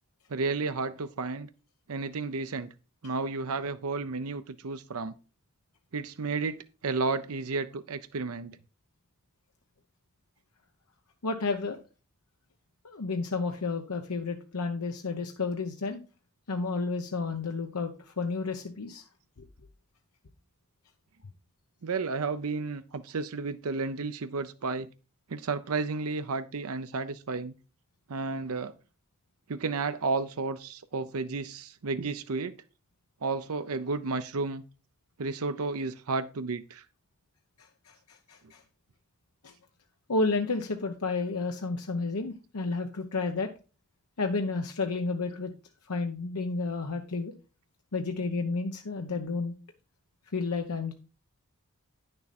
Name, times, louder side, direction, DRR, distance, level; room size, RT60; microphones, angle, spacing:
voice 1, 0.3-1.5 1.9-2.7 3.0-5.1 5.9-8.6 21.8-24.9 25.3-27.5 28.1-28.7 29.5-32.5 33.2-34.6 35.2-36.8, right 4 dB, 70° right, 0.6 m, -32 dB
voice 2, 11.2-11.8 12.8-16.0 16.5-19.0 37.9-38.6 39.4-39.5 40.1-43.5 44.2-45.5 45.9-47.3 47.9-49.5 50.3-50.9, left 3 dB, 85° left, 0.9 m, -31 dB
9.7 x 6.7 x 4.2 m
head